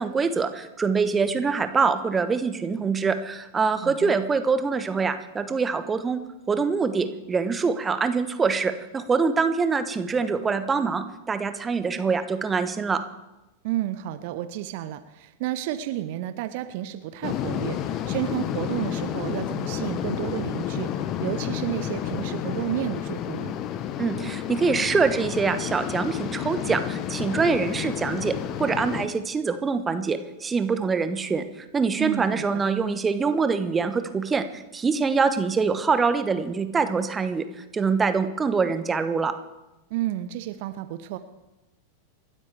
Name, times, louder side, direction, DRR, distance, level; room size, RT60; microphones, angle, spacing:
voice 1, 0.0-6.2 6.5-13.0 24.0-37.5 37.7-39.3, right 5 dB, 15° right, 10 dB, 1.1 m, -24 dB
voice 2, 3.8-4.2 13.6-23.5 32.0-32.6 39.9-41.2, right 13 dB, 50° right, 12 dB, 0.8 m, -31 dB
sound 1, 17.2-29.1, left 10 dB, 35° left, 1.0 m, -30 dB
28.0 x 13.0 x 3.4 m, 1.0 s
figure-of-eight pair, 90°, 0 cm